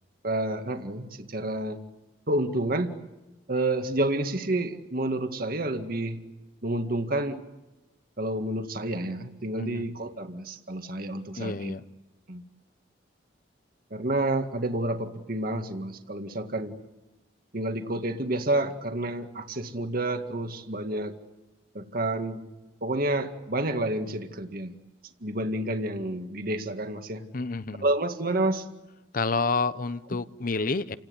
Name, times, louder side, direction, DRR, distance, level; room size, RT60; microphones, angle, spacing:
voice 1, 0.2-1.8 2.3-3.0 3.5-6.2 6.6-7.4 8.2-11.7 12.3-12.4 13.9-16.7 17.5-21.2 21.7-22.5 22.8-24.8 25.2-27.3 27.8-28.7, right 1 dB, 55° right, 6 dB, 2.0 m, -29 dB
voice 2, 11.3-11.8 27.3-27.9 29.1-31.0, left 3 dB, 50° left, 14 dB, 0.9 m, -29 dB
30.0 x 18.0 x 9.8 m, 1.0 s
head